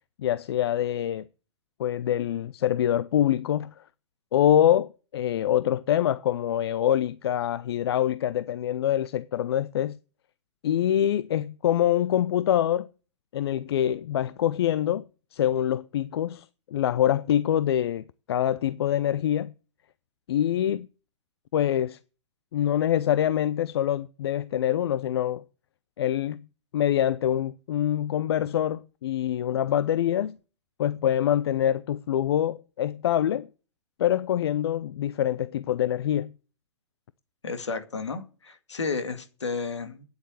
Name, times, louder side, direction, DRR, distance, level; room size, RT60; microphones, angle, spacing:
voice 1, 0.2-1.3 1.8-3.7 4.3-10.0 10.6-12.9 13.3-15.0 15.3-19.5 20.3-20.9 21.5-22.0 22.5-25.4 26.0-26.5 26.7-30.4 30.8-33.5 34.0-36.3, left 11 dB, 60° left, 0.5 m, -25 dB
voice 2, 37.4-40.1, left 4 dB, 80° left, 2.0 m, -32 dB
9.6 x 8.2 x 8.0 m
figure-of-eight pair, 110°, 15 cm